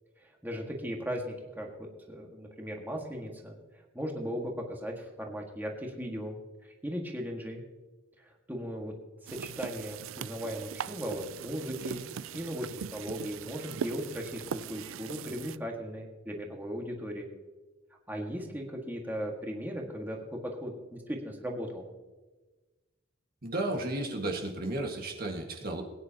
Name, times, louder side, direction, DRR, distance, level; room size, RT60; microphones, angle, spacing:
voice 1, 0.2-6.4 6.6-7.6 8.2-8.9 9.2-17.3 18.1-21.8, equal, 10° right, 0 dB, 1.7 m, -37 dB
sound 1, 9.3-15.6, right 7 dB, 90° right, 0.4 m, -40 dB
voice 2, 23.4-25.8, right 2 dB, 50° right, 2 dB, 1.7 m, -33 dB
19.5 x 9.8 x 2.9 m, 1.2 s
head